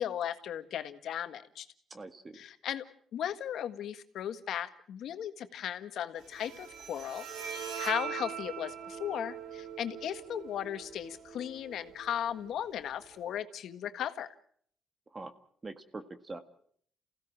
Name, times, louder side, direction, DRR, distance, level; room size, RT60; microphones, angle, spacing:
voice 1, 0.0-1.7 2.3-2.8 3.1-7.3 7.8-14.3, left 10 dB, 75° left, 9 dB, 1.7 m, -36 dB
voice 2, 1.9-2.4 15.1-15.3 15.6-16.4, right 3 dB, 25° right, 8 dB, 1.8 m, -43 dB
Bowed string instrument, 6.2-13.2, right 8 dB, 80° right, 4.2 m, -42 dB
28.5 x 16.5 x 7.4 m, 0.63 s
cardioid pair, 90°, 0 cm